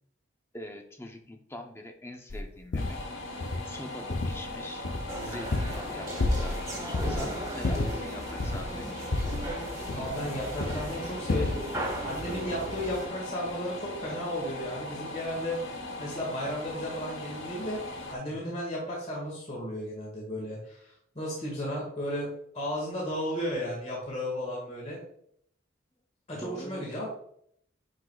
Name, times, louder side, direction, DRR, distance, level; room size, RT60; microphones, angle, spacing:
voice 1, 0.5-3.0 3.6-4.8 5.2-8.9 18.3-18.6 26.3-26.9, left 1 dB, 15° left, 4 dB, 0.7 m, -43 dB
sound 1, 2.3-2.4 2.7-3.0 3.4-3.7 4.1-4.5 4.8-5.9 6.2-6.7 6.9-7.2 7.6-8.7 9.1-10.3 10.6-10.9 11.3-11.6, left 2 dB, 70° left, 0.6 m, -30 dB
sound 2, 2.8-18.2, left 2 dB, 90° left, 1.1 m, -40 dB
sound 3, 5.1-13.1, right 1 dB, 15° right, 1.3 m, -37 dB
voice 2, 9.9-11.6 12.0-15.6 16.0-17.8 18.1-22.3 22.5-25.0 26.3-27.1, equal, 35° left, -5 dB, 1.9 m, -34 dB
9.9 x 4.8 x 2.3 m, 0.67 s
head